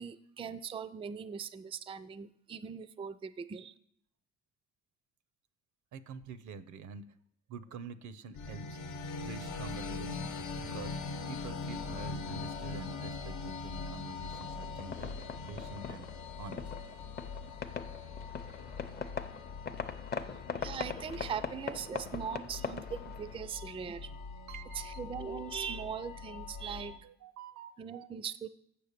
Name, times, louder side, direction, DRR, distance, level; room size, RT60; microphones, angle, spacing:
voice 1, 0.0-3.8 20.6-24.2 24.7-27.1 27.8-28.5, right 7 dB, 20° right, 15 dB, 0.3 m, -40 dB
voice 2, 5.9-7.0 7.5-8.8 9.2-11.0 11.3-15.1 15.5-16.1 16.4-16.7 24.5-25.0 27.0-28.1, right 5 dB, 80° right, 14 dB, 0.6 m, -47 dB
sound 1, 8.3-27.0, left 4 dB, 85° left, 0.9 m, -42 dB
sound 2, 14.3-23.4, left 5 dB, 35° left, 0.6 m, -41 dB
7.0 x 6.9 x 6.6 m, 0.71 s
cardioid pair, 90°, 29 cm